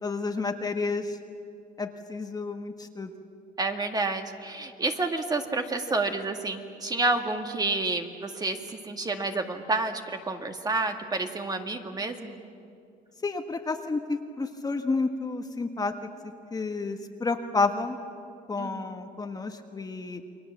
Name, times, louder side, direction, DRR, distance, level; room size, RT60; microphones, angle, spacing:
voice 1, 0.0-1.2 1.8-3.1 13.2-15.9 16.5-18.0 18.5-20.2, left 3 dB, 20° left, 5 dB, 1.4 m, -30 dB
voice 2, 3.6-12.3 18.6-18.9, right 3 dB, 25° right, 4 dB, 2.0 m, -29 dB
29.5 x 22.0 x 7.4 m, 2.4 s
cardioid pair, 110°, 17 cm